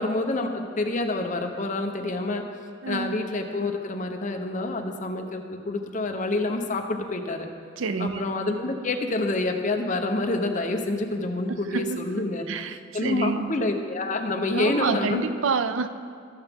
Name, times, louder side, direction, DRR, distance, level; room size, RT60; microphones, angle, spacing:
voice 1, 0.0-2.5 2.9-7.5 8.0-15.2, left 2 dB, 40° left, 4 dB, 0.8 m, -27 dB
voice 2, 2.8-3.2 7.8-8.2 11.5-12.1 12.5-13.6 14.5-15.9, right 4 dB, 70° right, 11 dB, 0.5 m, -28 dB
18.5 x 7.0 x 3.6 m, 2.3 s
head